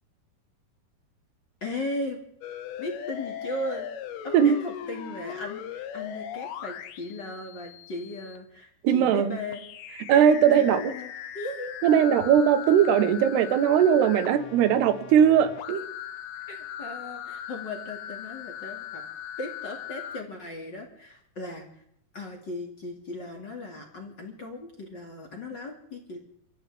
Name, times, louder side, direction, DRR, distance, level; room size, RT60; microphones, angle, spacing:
voice 1, 1.6-2.2 2.8-3.9 4.2-9.6 10.5-11.7 16.5-19.0 19.4-21.8 22.1-26.2, left 2 dB, 35° left, 1 dB, 2.4 m, -37 dB
sound 1, 2.4-8.4 9.5-20.2, left 9 dB, 80° left, 3.1 m, -39 dB
voice 2, 8.8-9.4 10.1-10.8 11.8-15.9, right 8 dB, 90° right, 10 dB, 3.3 m, -20 dB
28.0 x 14.5 x 3.6 m, 0.69 s
omnidirectional pair, 4.6 m